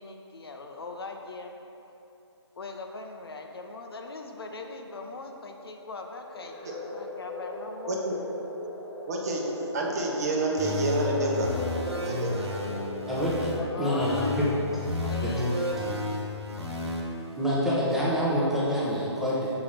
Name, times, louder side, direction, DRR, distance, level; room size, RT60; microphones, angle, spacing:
voice 1, 0.0-1.6 2.6-8.2 13.6-15.5, left 3 dB, 55° left, 3 dB, 0.7 m, -40 dB
sound 1, 6.3-14.7, left 2 dB, 25° left, 1.3 m, -39 dB
voice 2, 7.9-8.2 9.1-11.6 12.0-12.5, right 2 dB, 35° right, -1 dB, 1.0 m, -28 dB
sound 2, 10.6-13.6 14.0-17.0, left 2 dB, 65° right, 1.5 m, -31 dB
voice 3, 13.8-14.5 15.9-16.0 17.3-19.5, equal, ahead, -8 dB, 0.8 m, -26 dB
6.9 x 4.8 x 5.6 m, 2.9 s
figure-of-eight pair, 140°, 15 cm